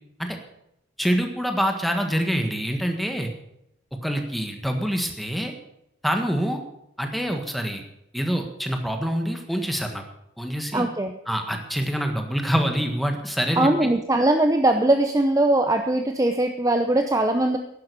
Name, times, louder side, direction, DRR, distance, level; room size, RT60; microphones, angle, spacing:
voice 1, 1.0-3.3 4.0-5.5 6.0-6.6 7.0-7.8 8.1-10.0 10.4-10.8 11.3-13.9, equal, ahead, 4 dB, 1.6 m, -26 dB
voice 2, 10.7-11.1 13.6-17.6, right 1 dB, 15° right, 6 dB, 0.7 m, -21 dB
11.5 x 11.0 x 6.9 m, 0.80 s
head